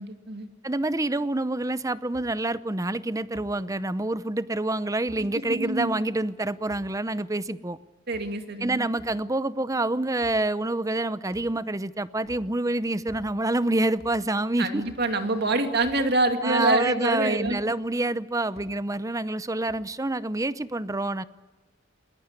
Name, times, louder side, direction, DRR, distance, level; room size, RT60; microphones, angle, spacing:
voice 1, 0.0-0.5 5.5-6.0 8.1-8.9 14.6-17.6, right 2 dB, 55° right, 7 dB, 2.3 m, -26 dB
voice 2, 0.6-7.8 8.6-14.8 16.4-21.2, right 2 dB, 15° right, 15 dB, 0.7 m, -27 dB
sound 1, 1.1-1.2 2.1-2.3 3.3-3.5 5.1-5.2 6.7-6.9 7.9-8.5 8.9-9.2 10.2-10.4 11.3-11.7 12.2-12.5 13.1-13.5 13.9-14.2 14.8-15.1 15.8-16.1 17.4-17.6 18.5-18.7 19.7-20.0, left 1 dB, 55° left, 5.6 m, -49 dB
21.0 x 20.5 x 9.7 m, 1.2 s
head